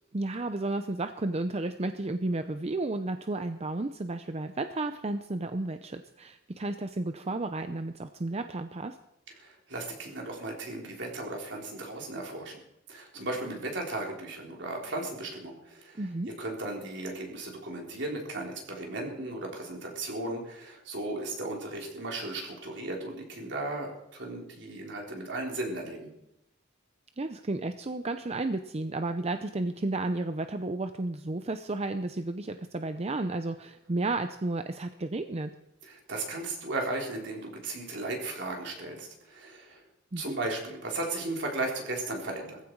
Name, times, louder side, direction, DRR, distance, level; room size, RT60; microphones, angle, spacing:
voice 1, 0.1-9.0 16.0-16.3 27.2-35.5 40.1-40.3, right 2 dB, 35° right, 9 dB, 0.6 m, -32 dB
voice 2, 9.4-12.6 12.9-16.1 16.4-26.1 35.8-39.8 40.2-42.6, right 2 dB, 65° right, 0 dB, 3.9 m, -36 dB
19.0 x 15.0 x 4.7 m, 0.84 s
head